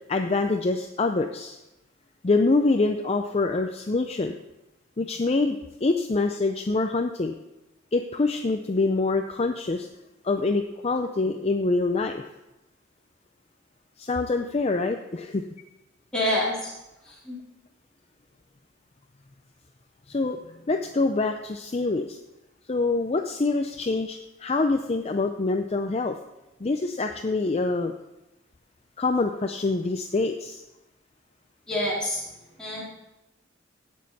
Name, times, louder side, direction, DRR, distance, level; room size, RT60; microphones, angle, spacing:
voice 1, 0.1-1.6 2.2-4.3 5.0-7.3 7.9-9.9 10.2-12.2 14.0-15.4 20.1-20.4 20.7-22.2 22.7-26.2 26.6-27.9 29.0-30.6, left 3 dB, 30° left, 5 dB, 0.5 m, -25 dB
voice 2, 16.1-16.7 17.0-17.4 31.7-32.3 32.6-32.8, left 1 dB, 5° left, -8 dB, 3.5 m, -27 dB
16.0 x 6.5 x 4.1 m, 0.95 s
head